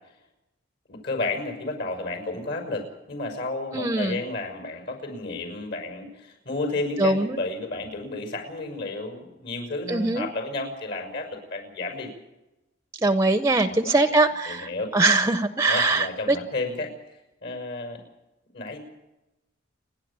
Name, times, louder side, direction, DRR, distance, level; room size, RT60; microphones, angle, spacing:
voice 1, 0.9-12.1 13.6-14.1 14.5-14.9 15.7-16.9 17.4-18.0 18.5-18.8, left 2 dB, 60° left, 5 dB, 6.4 m, -32 dB
voice 2, 3.7-4.2 7.0-7.4 9.9-10.3 13.0-16.4, right 2 dB, 15° right, 10 dB, 0.7 m, -22 dB
30.0 x 11.0 x 8.8 m, 0.98 s
head